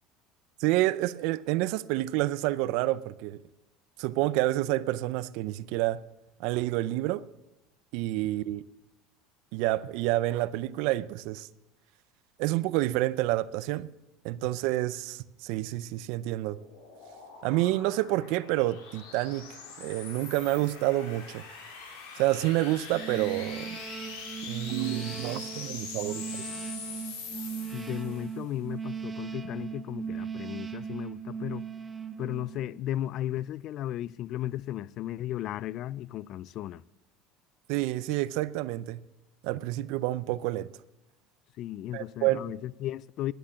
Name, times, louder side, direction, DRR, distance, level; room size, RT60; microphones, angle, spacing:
voice 1, 0.6-3.4 4.0-6.0 6.4-7.2 7.9-8.6 9.5-11.5 12.4-13.9 14.2-16.6 17.4-19.5 19.8-21.4 22.2-23.8 24.4-26.2 37.7-39.0 39.4-40.7 41.9-42.4, right 16 dB, 70° right, 0.5 m, -28 dB
sound 1, 15.8-28.4, left 5 dB, 80° left, 3.2 m, -43 dB
sound 2, 22.9-32.8, right 7 dB, 20° right, 0.6 m, -38 dB
voice 2, 27.7-31.6 32.2-36.8 41.6-43.3, left 13 dB, 50° left, 0.3 m, -35 dB
10.5 x 10.0 x 6.9 m
supercardioid pair, 135°, 0 cm